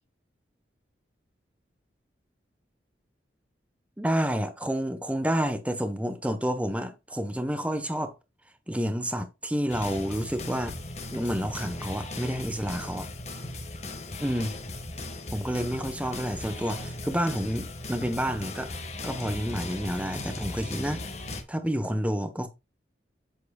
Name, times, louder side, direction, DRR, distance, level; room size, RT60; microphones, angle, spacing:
voice 1, 4.0-8.1 8.7-10.7 11.1-13.1 14.2-14.5 15.3-18.7 19.0-21.0 21.5-22.5, equal, 5° right, 1.0 m, -29 dB
sound 1, 9.7-21.4, left 2 dB, 35° left, 1.5 m, -37 dB
8.3 x 7.7 x 2.3 m
head